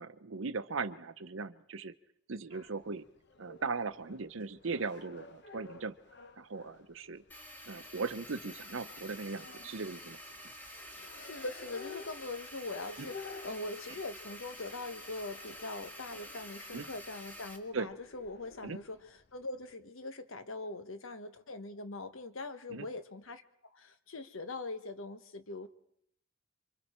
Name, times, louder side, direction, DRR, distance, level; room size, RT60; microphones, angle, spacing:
voice 1, 0.0-1.9 2.3-3.0 3.4-5.9 6.4-7.2 7.7-10.2 13.0-13.1 16.7-16.9 17.7-17.9 18.6-18.8 22.7-22.9, right 4 dB, 70° right, 13 dB, 0.8 m, -38 dB
sound 1, 2.5-19.7, left 4 dB, 50° left, 1.0 m, -54 dB
sound 2, 7.3-17.6, equal, 10° left, 1.8 m, -49 dB
voice 2, 10.9-23.4 23.7-25.7, left 2 dB, 75° left, 9 dB, 1.2 m, -42 dB
28.0 x 24.5 x 4.4 m, 0.72 s
head